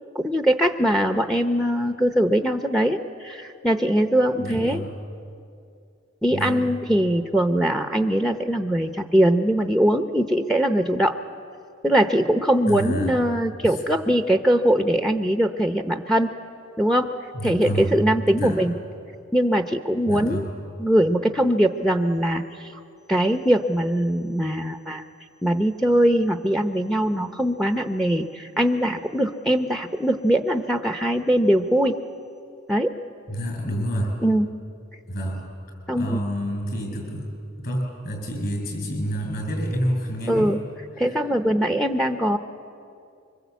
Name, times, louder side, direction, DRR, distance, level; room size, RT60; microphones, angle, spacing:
voice 1, 0.1-4.8 6.2-11.2 11.8-16.3 16.8-17.1 17.4-18.7 19.3-20.5 20.8-22.7 23.1-25.0 25.4-32.0 32.7-32.9 34.2-34.5 35.9-36.2 40.3-40.6 41.0-42.4, right 1 dB, ahead, 7 dB, 0.8 m, -21 dB
voice 2, 4.4-4.9 6.3-6.6 12.7-13.1 13.6-13.8 17.3-17.9 18.4-18.6 20.1-20.5 33.3-34.1 35.1-35.4 35.9-37.3 37.6-40.5 41.1-41.2, equal, 50° left, 2 dB, 6.9 m, -28 dB
25.5 x 24.0 x 8.3 m, 2.5 s
head